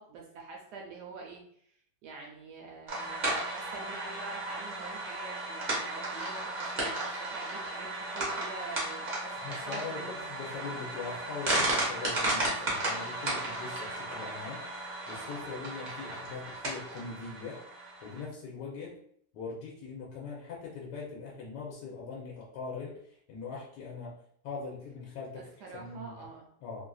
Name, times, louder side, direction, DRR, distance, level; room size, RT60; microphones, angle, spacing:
voice 1, 0.0-1.4 2.0-10.2 25.4-26.5, right 3 dB, 75° right, -1 dB, 1.2 m, -46 dB
sound 1, 2.9-18.2, right 2 dB, 35° right, 0.8 m, -34 dB
voice 2, 9.4-17.6 18.0-18.9 19.3-24.2 24.4-26.1 26.6-26.9, left 4 dB, 80° left, -3 dB, 1.3 m, -41 dB
3.2 x 2.5 x 2.3 m, 0.65 s
omnidirectional pair, 1.8 m